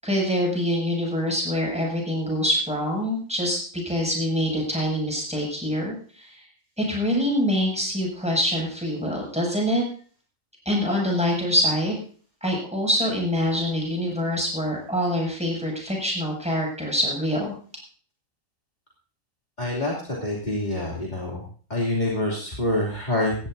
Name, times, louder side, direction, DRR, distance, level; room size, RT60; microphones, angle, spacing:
voice 1, 0.0-6.4 6.8-9.8 10.7-12.0 12.4-17.5, equal, 5° right, -2 dB, 7.2 m, -25 dB
voice 2, 19.6-21.4 21.7-23.5, left 1 dB, 35° left, -4 dB, 3.1 m, -26 dB
18.0 x 15.5 x 2.7 m, 0.42 s
omnidirectional pair, 1.4 m